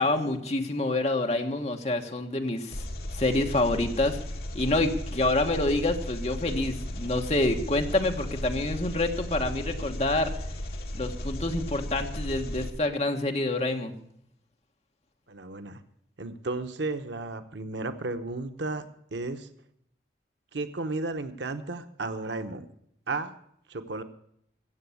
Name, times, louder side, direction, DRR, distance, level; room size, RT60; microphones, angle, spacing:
voice 1, 0.0-2.8 3.1-4.2 4.5-10.3 10.9-13.9, left 2 dB, 35° left, 4 dB, 1.4 m, -27 dB
Engine, 2.7-12.7, left 1 dB, 60° left, 1.6 m, -35 dB
voice 2, 15.3-15.8 16.2-18.8 19.1-19.5 20.5-22.7 23.1-23.3 23.7-24.0, right 3 dB, 85° right, 9 dB, 1.0 m, -33 dB
16.0 x 7.1 x 8.4 m, 0.70 s
head